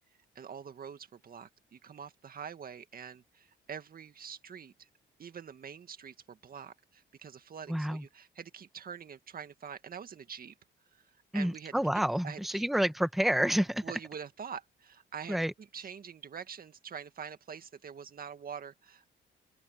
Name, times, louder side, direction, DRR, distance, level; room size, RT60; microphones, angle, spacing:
voice 1, 0.4-4.9 5.2-10.6 10.9-11.7 12.2-12.6 13.8-19.2, right 7 dB, 50° right, 1.9 m, -45 dB
voice 2, 7.7-8.0 11.3-13.8 15.3-15.5, equal, ahead, 1.2 m, -29 dB
open air
cardioid pair, 90°, 20 cm